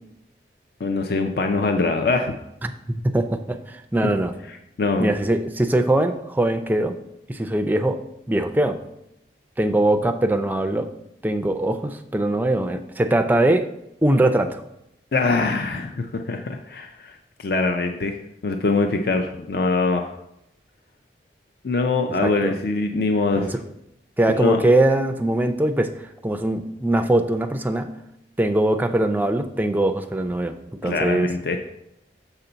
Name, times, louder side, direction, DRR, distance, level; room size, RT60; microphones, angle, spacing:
voice 1, 0.8-2.3 4.0-4.1 4.8-5.1 15.1-20.1 21.6-23.5 24.3-24.6 30.8-31.6, left 3 dB, 55° left, 5 dB, 0.4 m, -23 dB
voice 2, 2.6-4.3 5.0-7.0 7.3-8.8 9.6-10.9 11.2-13.7 14.0-14.6 22.2-22.5 23.4-23.6 24.2-25.9 26.2-27.9 28.4-30.6 30.8-31.3, right 1 dB, 10° right, 7 dB, 0.3 m, -21 dB
6.8 x 5.6 x 3.9 m, 0.82 s
head